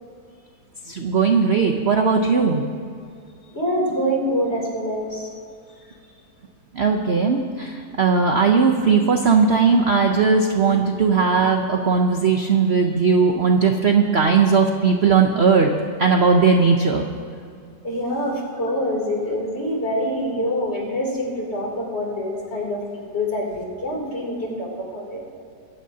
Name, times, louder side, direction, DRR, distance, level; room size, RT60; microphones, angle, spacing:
voice 1, 0.9-2.6 6.7-15.7 16.0-17.0, right 5 dB, 50° right, 3 dB, 0.9 m, -18 dB
voice 2, 3.5-5.3 17.8-24.7 24.9-25.3, equal, 35° left, -3 dB, 3.4 m, -25 dB
25.0 x 15.0 x 2.8 m, 2.3 s
omnidirectional pair, 1.9 m